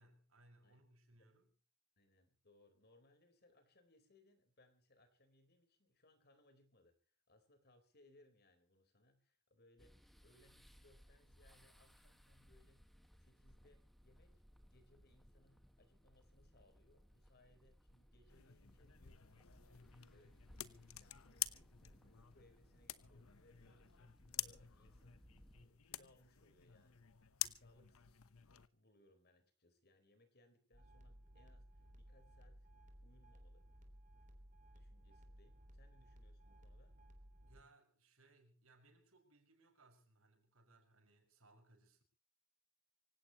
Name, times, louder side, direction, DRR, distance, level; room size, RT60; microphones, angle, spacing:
voice 1, 0.0-1.5 37.4-42.0, right 2 dB, 75° right, 5.9 m, -68 dB
voice 2, 2.0-7.0 7.3-12.9 13.2-14.4 14.7-25.2 25.6-27.1 27.5-31.7 31.9-32.7 33.0-33.7 34.7-37.0, left 1 dB, 50° left, 4.2 m, -71 dB
sound 1, 9.8-25.7, equal, ahead, 1.6 m, -66 dB
sound 2, 18.3-28.7, left 14 dB, 85° left, 1.0 m, -49 dB
sound 3, 30.7-37.6, equal, 40° right, 3.5 m, -60 dB
25.5 x 16.5 x 3.0 m
head